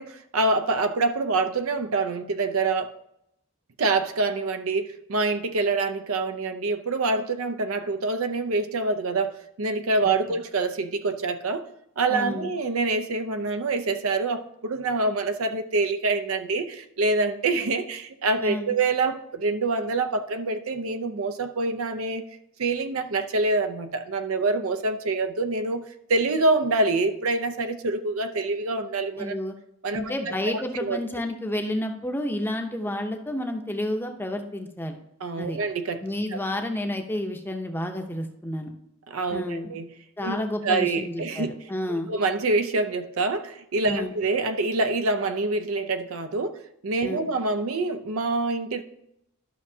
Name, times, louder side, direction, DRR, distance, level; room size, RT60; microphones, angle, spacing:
voice 1, 0.0-2.9 3.8-9.3 9.6-11.6 12.0-22.2 22.6-25.8 26.1-29.4 29.8-31.0 35.2-36.0 36.3-36.4 39.1-39.9 40.2-40.4 40.6-41.5 41.9-46.6 46.8-48.8, right 3 dB, 80° right, 8 dB, 0.6 m, -26 dB
voice 2, 12.1-12.5 18.4-18.7 29.2-29.5 30.0-35.0 35.4-35.6 36.0-38.7 39.3-39.7 40.2-42.1 43.8-44.1 47.0-47.3, left 1 dB, 10° left, 5 dB, 0.7 m, -30 dB
12.0 x 6.0 x 2.8 m, 0.79 s
head